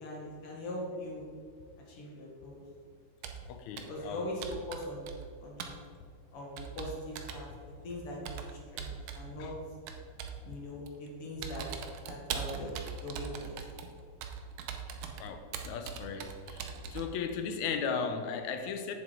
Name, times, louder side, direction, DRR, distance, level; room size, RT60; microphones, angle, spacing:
voice 1, 0.0-1.3 1.9-2.6 3.9-5.8 6.3-7.5 7.8-9.5 10.4-11.7 12.0-12.7 13.0-13.6, left 1 dB, 50° left, -2 dB, 2.4 m, -41 dB
Computer keyboard, 3.2-3.5 3.8-4.1 4.4-5.3 5.6-5.8 6.6-7.5 8.3-9.3 9.9-10.4 10.9-11.1 11.4-17.1, right 7 dB, 90° right, 2.2 m, -41 dB
voice 2, 3.5-4.3 9.4-9.5 15.2-18.9, left 6 dB, 75° left, 7 dB, 1.9 m, -36 dB
8.1 x 7.1 x 4.5 m, 2.2 s
omnidirectional pair, 3.6 m